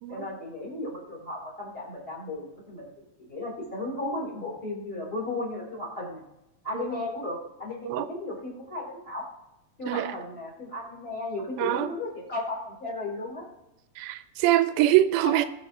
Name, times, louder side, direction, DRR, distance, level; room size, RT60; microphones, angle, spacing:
voice 1, 0.1-2.9 3.2-6.2 6.6-9.3 9.8-13.5 15.2-15.5, left 2 dB, 15° left, 3.7 m, -35 dB
voice 2, 11.6-11.9 14.0-15.5, right 14 dB, 85° right, 2.3 m, -24 dB
20.5 x 7.0 x 3.1 m
omnidirectional pair, 4.3 m